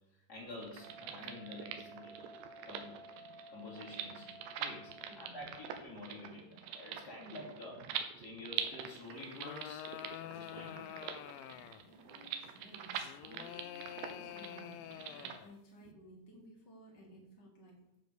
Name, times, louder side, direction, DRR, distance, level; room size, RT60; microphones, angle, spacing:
voice 1, 0.1-3.0 3.5-4.3 4.5-10.9, left 2 dB, 25° left, -4 dB, 2.8 m, -49 dB
sound 1, 0.6-15.4, right 9 dB, 75° right, 3.0 m, -44 dB
Wind instrument woodwind instrument, 0.8-5.5, right 2 dB, 15° right, 1.0 m, -55 dB
voice 2, 5.0-5.6 11.4-17.8, equal, 60° left, -2 dB, 1.1 m, -57 dB
sound 2, 9.1-11.9 12.9-15.5, left 12 dB, 85° left, 2.7 m, -47 dB
8.2 x 7.5 x 6.9 m, 0.87 s
omnidirectional pair, 5.3 m